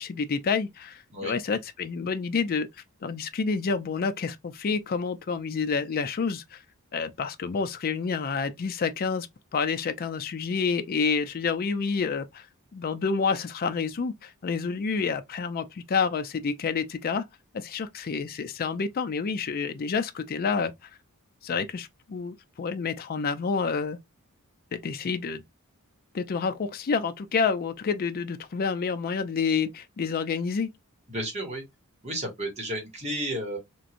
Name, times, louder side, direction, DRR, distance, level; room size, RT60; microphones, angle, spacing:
voice 1, 0.0-2.7 3.0-6.6 6.9-9.3 9.5-12.5 12.7-17.2 17.5-20.7 21.4-24.0 24.7-25.4 26.1-30.7, left 5 dB, 45° left, 0.4 m, -28 dB
voice 2, 31.1-31.6 32.0-33.6, right 1 dB, 30° right, 1.4 m, -32 dB
3.0 x 2.5 x 2.4 m
head